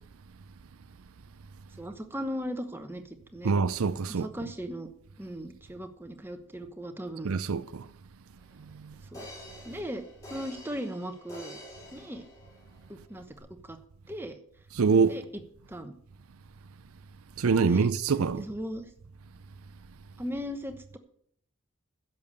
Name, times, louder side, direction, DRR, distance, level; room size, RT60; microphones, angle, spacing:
voice 1, 1.8-3.5 4.1-4.9 5.2-7.3 9.1-9.3 9.6-11.6 11.9-12.2 12.9-13.2 13.6-13.8 14.1-14.4 15.1-15.4 15.7-15.9 17.6-17.9 18.4-18.9 20.2-21.0, equal, 10° right, 1.0 m, -37 dB
voice 2, 3.4-4.3 7.2-7.9 8.8-8.9 14.8-15.2 17.4-18.4, right 5 dB, 75° right, 0.5 m, -25 dB
sound 1, 8.4-8.5 9.1-12.9 13.4-13.5, left 1 dB, 15° left, 3.8 m, -47 dB
10.5 x 7.0 x 8.2 m
head